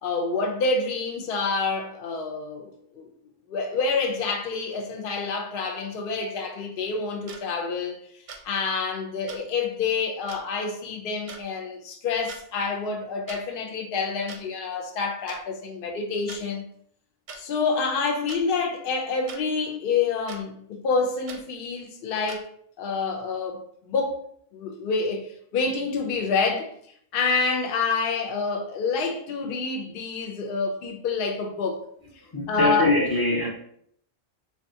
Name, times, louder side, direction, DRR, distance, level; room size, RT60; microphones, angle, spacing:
voice 1, 0.0-3.1 3.5-8.0 8.4-16.7 17.4-22.5 22.8-24.2 24.5-26.7 27.1-31.8 32.5-32.9, left 4 dB, 65° left, 0.7 m, -27 dB
sound 1, 7.3-7.4 8.3-8.4 9.3-9.4 10.3-10.4 11.3-11.4 12.1-12.4 13.3-13.4 14.3-14.4 15.3-15.4 16.3-16.4 17.3-17.4 18.3-18.4 19.3-19.4 20.3-20.4 21.3-21.4 22.3-22.4, right 4 dB, 55° right, 0.6 m, -40 dB
voice 2, 32.3-33.5, left 2 dB, 35° left, 0.3 m, -23 dB
3.5 x 2.3 x 2.7 m
omnidirectional pair, 1.0 m